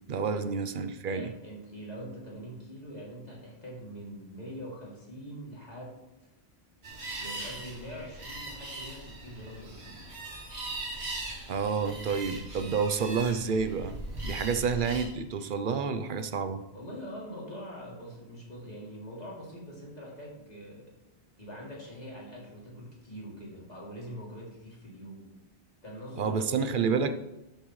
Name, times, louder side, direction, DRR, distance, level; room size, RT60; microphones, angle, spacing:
voice 1, 0.1-1.3 11.5-14.0 14.2-16.6 26.2-27.1, right 5 dB, 55° right, 10 dB, 0.7 m, -29 dB
voice 2, 1.1-6.0 7.2-10.0 16.7-20.9 21.4-25.3 25.8-27.1, equal, 40° left, -5 dB, 2.9 m, -43 dB
sound 1, 6.8-15.0, right 2 dB, 80° right, 2.0 m, -40 dB
12.0 x 7.5 x 3.2 m, 1.0 s
omnidirectional pair, 1.1 m